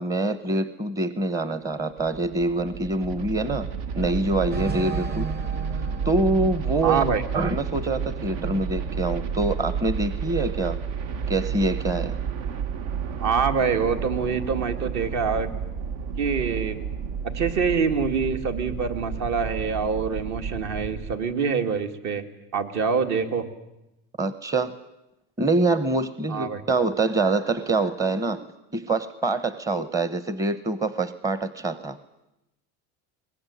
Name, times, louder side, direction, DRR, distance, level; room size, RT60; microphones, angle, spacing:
voice 1, 0.0-3.7 4.0-5.3 6.0-7.0 7.3-10.8 11.3-12.2 24.2-24.7 25.4-28.5 28.7-32.0, right 2 dB, 10° right, 13 dB, 0.8 m, -25 dB
sound 1, 1.7-21.1, right 7 dB, 70° right, 1.5 m, -31 dB
sound 2, 4.5-7.4, right 3 dB, 30° right, 1.3 m, -35 dB
voice 2, 6.8-7.2 13.2-15.5 16.2-16.8 17.2-22.2 22.5-23.5 26.3-26.6, right 5 dB, 55° right, 7 dB, 2.4 m, -25 dB
22.5 x 20.5 x 9.8 m, 0.93 s
cardioid pair, 140°, 33 cm